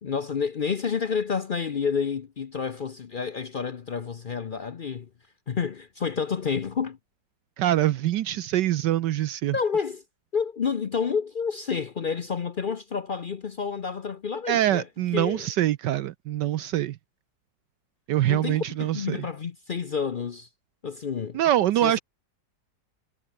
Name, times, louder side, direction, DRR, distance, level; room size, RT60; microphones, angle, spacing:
voice 1, 0.0-5.1 5.5-7.0 9.5-10.0 10.3-14.9 15.1-15.5 18.3-20.5 20.8-21.4 21.8-22.0, left 6 dB, 70° left, 0.4 m, -29 dB
voice 2, 7.6-9.6 14.5-17.0 18.1-19.3 21.3-22.0, right 13 dB, 75° right, 1.3 m, -24 dB
omnidirectional pair, 2.0 m